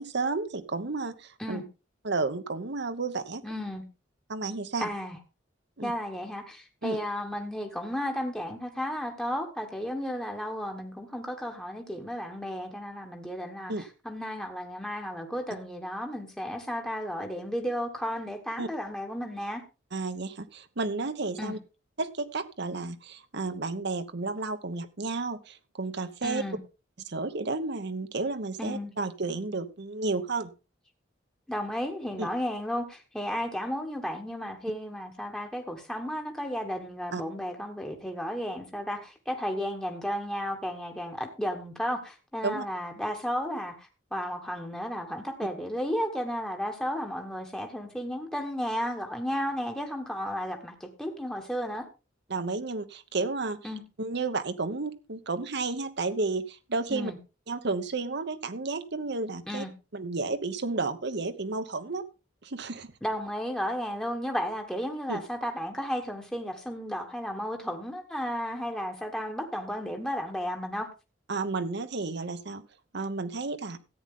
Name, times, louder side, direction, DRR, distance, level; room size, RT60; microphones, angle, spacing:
voice 1, 0.0-1.6 2.0-3.4 4.3-4.9 5.8-5.9 6.8-7.0 13.7-13.8 18.6-18.7 19.9-21.6 22.0-26.4 27.0-30.5 32.2-32.3 37.1-37.2 42.4-42.6 52.3-53.6 54.0-57.1 57.5-59.6 59.9-62.0 62.4-62.9 65.1-65.2 71.3-72.6 72.9-73.8, right 3 dB, 60° right, 1.0 m, -32 dB
voice 2, 3.4-3.8 4.8-5.2 5.8-19.6 21.4-21.6 26.2-26.6 28.6-28.9 31.5-51.9 53.6-53.8 56.9-57.2 59.5-59.7 63.0-70.9, equal, 5° left, 1.3 m, -33 dB
14.0 x 8.9 x 3.7 m
head